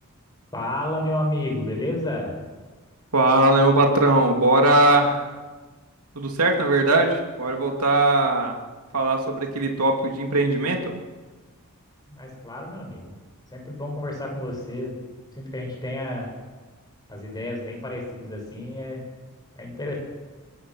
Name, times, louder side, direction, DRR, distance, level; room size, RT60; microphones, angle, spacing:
voice 1, 0.5-2.4 12.1-13.2 13.5-15.0 15.4-16.3 17.1-19.0 19.5-20.0, left 1 dB, 20° left, 0 dB, 6.8 m, -30 dB
voice 2, 3.1-5.3 6.1-8.6 8.9-10.9, right 2 dB, 85° right, 2 dB, 2.8 m, -20 dB
25.0 x 18.5 x 6.4 m, 1.3 s
head